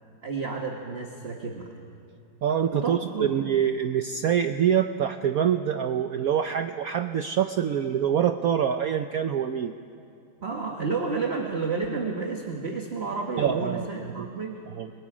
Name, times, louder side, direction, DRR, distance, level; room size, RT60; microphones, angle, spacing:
voice 1, 0.0-1.7 2.7-3.4 10.4-14.6, right 4 dB, 35° right, 1 dB, 1.4 m, -31 dB
voice 2, 2.4-9.7 13.4-13.8 14.2-14.3 14.7-14.9, right 9 dB, 80° right, 8 dB, 0.8 m, -25 dB
30.0 x 22.0 x 5.0 m, 2.7 s
omnidirectional pair, 2.3 m